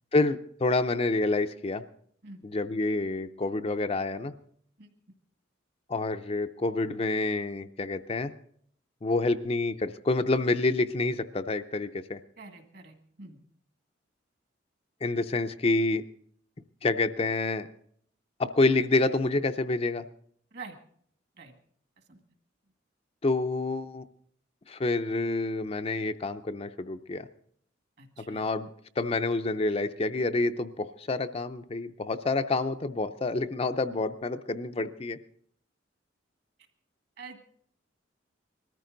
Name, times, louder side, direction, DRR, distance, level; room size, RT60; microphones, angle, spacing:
voice 1, 0.1-1.8 2.4-4.3 5.9-8.3 9.0-12.2 15.0-16.0 16.8-17.7 18.4-20.1 23.2-24.0 24.7-27.3 28.3-28.7 29.0-35.2, left 2 dB, 30° left, 8 dB, 0.5 m, -28 dB
voice 2, 2.2-2.5 4.8-4.9 12.4-13.4 20.5-20.8 21.4-21.5 22.1-22.2 28.0-28.5 37.2-37.4, right 4 dB, 55° right, 6 dB, 1.9 m, -46 dB
20.5 x 13.5 x 3.9 m, 0.62 s
head